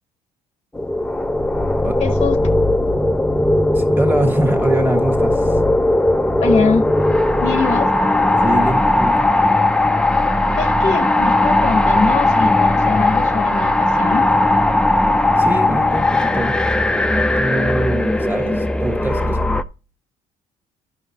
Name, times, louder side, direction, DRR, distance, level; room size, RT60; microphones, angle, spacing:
sound 1, 0.8-19.6, left 1 dB, 5° left, 0.4 m, -17 dB
voice 1, 2.0-2.4 6.4-6.9 7.4-7.9 10.6-14.3, left 5 dB, 35° left, 0.7 m, -22 dB
voice 2, 3.7-5.6 8.4-9.3 15.4-16.6 17.4-19.5, right 1 dB, 10° right, 1.5 m, -23 dB
13.0 x 5.7 x 2.8 m
cardioid pair, 110°, 17 cm